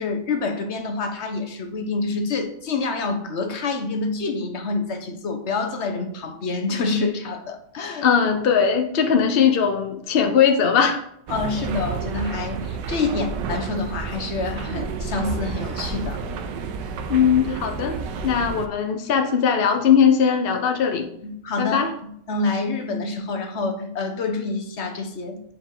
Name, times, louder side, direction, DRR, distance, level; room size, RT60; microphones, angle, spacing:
voice 1, 0.0-8.1 11.3-16.2 21.2-25.4, left 3 dB, 45° left, 5 dB, 1.0 m, -27 dB
voice 2, 8.0-11.0 17.1-18.0 18.2-21.1 21.6-21.9, left 7 dB, 70° left, 5 dB, 0.5 m, -19 dB
sound 1, 11.3-18.7, right 5 dB, 75° right, 1.3 m, -30 dB
8.4 x 4.8 x 3.8 m, 0.71 s
omnidirectional pair, 1.9 m